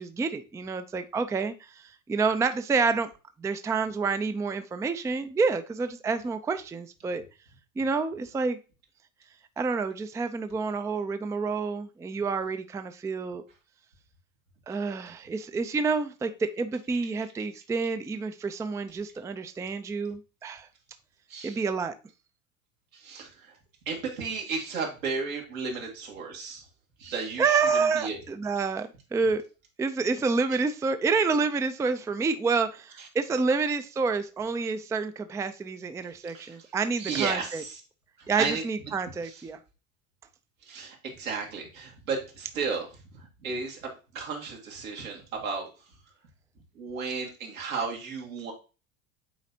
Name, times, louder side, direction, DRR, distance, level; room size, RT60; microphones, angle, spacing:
voice 1, 0.0-3.1 3.4-7.2 7.8-8.6 9.6-13.4 14.7-20.7 21.4-21.9 27.4-29.4 29.8-37.6 38.3-39.6, right 4 dB, 10° right, 10 dB, 0.4 m, -28 dB
voice 2, 21.3-21.6 22.9-23.6 23.9-26.6 27.0-28.2 33.0-33.1 36.3-36.6 37.0-37.8 38.2-38.6 39.2-39.4 40.7-42.9 43.1-45.7 46.8-48.5, right 5 dB, 80° right, 0 dB, 2.0 m, -34 dB
8.5 x 4.1 x 2.8 m, 0.33 s
hypercardioid pair, 70°, 40 cm